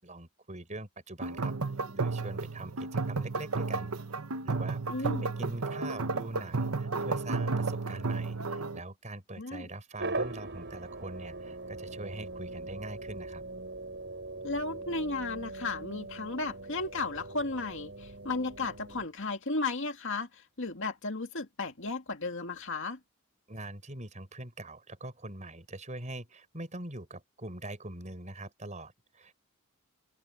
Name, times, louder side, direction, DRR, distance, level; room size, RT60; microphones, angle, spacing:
voice 1, 0.0-1.5 1.9-3.9 4.4-5.1 5.4-13.4 23.5-29.3, right 1 dB, 35° right, 5.8 m, -43 dB
moroccan drums distant, 1.2-8.8, right 3 dB, 75° right, 1.1 m, -32 dB
voice 2, 4.9-5.3 9.4-9.7 14.4-23.0, left 3 dB, 60° left, 2.4 m, -34 dB
sound 1, 10.0-19.1, right 2 dB, 50° right, 7.6 m, -40 dB
open air
head